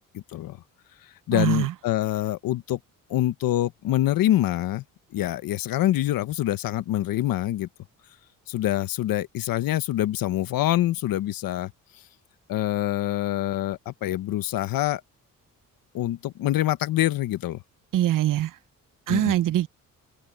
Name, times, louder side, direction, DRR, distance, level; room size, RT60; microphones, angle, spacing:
voice 1, 0.1-0.6 1.3-2.8 3.1-4.8 5.1-7.7 8.5-11.7 12.5-15.0 15.9-17.6 19.1-19.3, left 14 dB, 85° left, 1.1 m, -25 dB
voice 2, 1.3-1.7 17.9-18.6 19.1-19.7, right 13 dB, 65° right, 0.7 m, -23 dB
cardioid pair, 95°, 34 cm